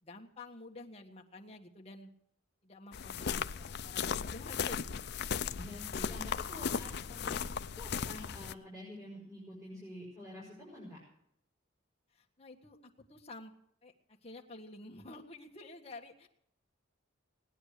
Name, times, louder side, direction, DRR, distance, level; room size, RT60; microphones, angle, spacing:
voice 1, 0.0-2.1 2.6-5.0 5.3-5.8 12.1-13.5 13.8-16.3, left 2 dB, 30° left, 1 dB, 1.6 m, -50 dB
sound 1, 2.9-8.5, left 7 dB, 55° left, 0.5 m, -37 dB
voice 2, 5.5-7.4 7.7-11.0, left 1 dB, 15° right, -6 dB, 5.9 m, -48 dB
18.5 x 10.0 x 6.7 m, 0.73 s
head